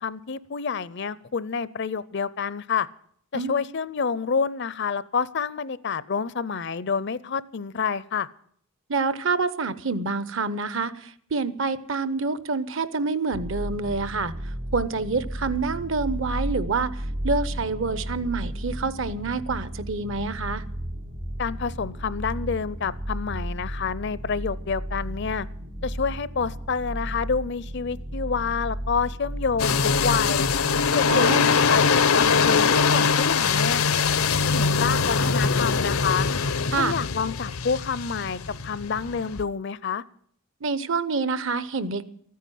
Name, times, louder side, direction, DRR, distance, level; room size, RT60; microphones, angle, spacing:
voice 1, 0.0-2.9 3.3-8.3 21.4-25.5 25.8-30.5 30.9-33.8 34.5-36.3 36.8-40.0, left 5 dB, 55° left, 18 dB, 0.6 m, -28 dB
voice 2, 8.9-20.6 31.1-31.5 36.7-37.0 40.6-42.1, right 4 dB, 60° right, 15 dB, 0.9 m, -27 dB
sound 1, 13.3-31.1, equal, 85° right, 1.5 m, -34 dB
sound 2, 29.6-39.4, left 5 dB, 85° left, 0.9 m, -22 dB
14.0 x 9.4 x 9.2 m, 0.64 s
head